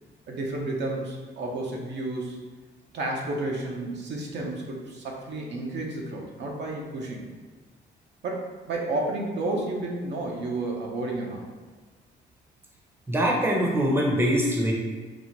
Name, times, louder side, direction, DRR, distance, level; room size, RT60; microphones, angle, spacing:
voice 1, 0.3-2.4 2.9-7.3 8.2-11.4, right 2 dB, 65° right, -1 dB, 0.8 m, -31 dB
voice 2, 13.1-14.7, equal, 10° right, -2 dB, 0.9 m, -23 dB
4.3 x 2.1 x 4.5 m, 1.4 s
cardioid pair, 90°, 20 cm